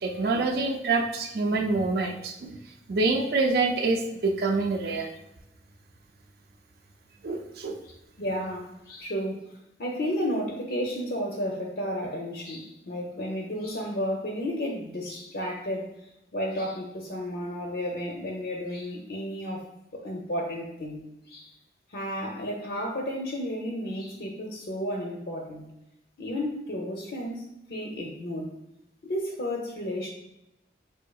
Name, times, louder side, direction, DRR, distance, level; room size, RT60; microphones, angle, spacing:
voice 1, 0.0-2.6 2.9-5.1 7.2-7.8, right 3 dB, 60° right, 3 dB, 0.4 m, -26 dB
voice 2, 8.2-15.9 16.3-19.7 19.9-21.5 21.9-25.7 26.2-27.4 27.7-28.5 29.0-30.1, equal, 65° left, 0 dB, 0.5 m, -32 dB
4.9 x 2.7 x 2.3 m, 0.87 s
head